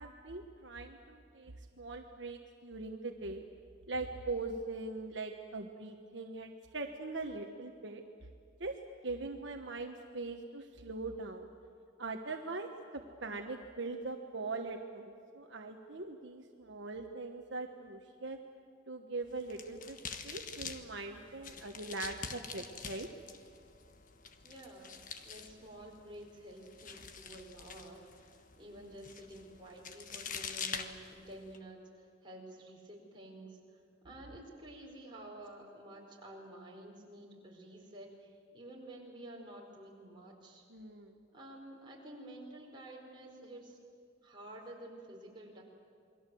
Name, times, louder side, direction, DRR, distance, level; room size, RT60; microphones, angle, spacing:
voice 1, 0.0-3.5 3.9-8.0 8.6-8.8 9.0-11.5 12.0-18.4 18.9-20.0 20.2-23.1 40.7-41.1, right 3 dB, 65° right, 3 dB, 1.3 m, -41 dB
sound 1, 19.2-31.6, left 6 dB, 40° left, 1.3 m, -46 dB
voice 2, 24.4-24.9 25.2-28.3 28.6-33.6 34.0-40.7 41.3-43.8 44.2-45.6, right 1 dB, 25° right, -2 dB, 4.7 m, -50 dB
28.5 x 22.0 x 7.8 m, 2.4 s
head